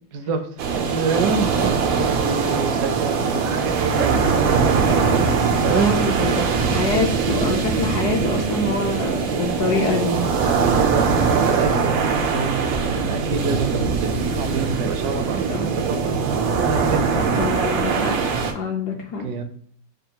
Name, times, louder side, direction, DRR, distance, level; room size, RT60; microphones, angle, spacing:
voice 1, 0.1-5.4 5.6-6.5 10.8-16.3 16.6-17.3 19.2-19.4, right 5 dB, 70° right, 6 dB, 1.0 m, -27 dB
sound 1, 0.6-18.5, right 5 dB, 90° right, 1.4 m, -21 dB
voice 2, 5.7-10.2 15.5-15.7 17.2-18.2 18.5-19.4, left 3 dB, 70° left, 0 dB, 1.0 m, -25 dB
5.3 x 2.3 x 2.7 m, 0.62 s
omnidirectional pair, 2.0 m